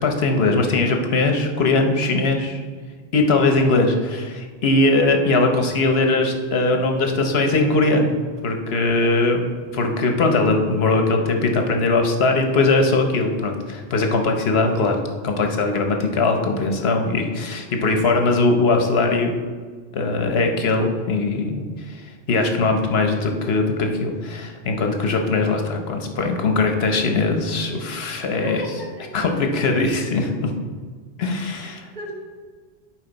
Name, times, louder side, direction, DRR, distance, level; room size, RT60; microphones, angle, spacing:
voice 1, 0.0-2.6 3.1-8.1 8.4-15.0 15.2-19.3 19.9-22.0 22.3-28.6 29.1-30.5 31.2-31.9, left 3 dB, 70° left, 4 dB, 1.1 m, -20 dB
voice 2, 8.8-9.1 28.4-29.2 31.9-32.1, equal, 45° right, -3 dB, 1.4 m, -32 dB
10.5 x 5.0 x 4.0 m, 1.5 s
omnidirectional pair, 1.1 m